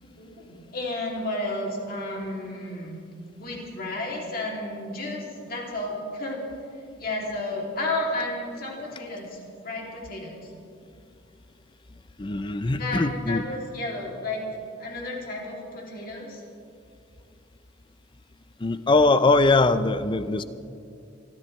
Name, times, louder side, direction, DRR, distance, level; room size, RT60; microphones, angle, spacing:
voice 1, 0.0-3.0 3.3-6.4 7.0-9.4 9.6-10.5 12.8-14.4 14.8-16.4, left 2 dB, 45° left, -2 dB, 2.8 m, -32 dB
voice 2, 12.2-13.4 18.6-20.4, left 3 dB, 25° left, 12 dB, 0.5 m, -21 dB
24.0 x 13.5 x 3.3 m, 2.5 s
head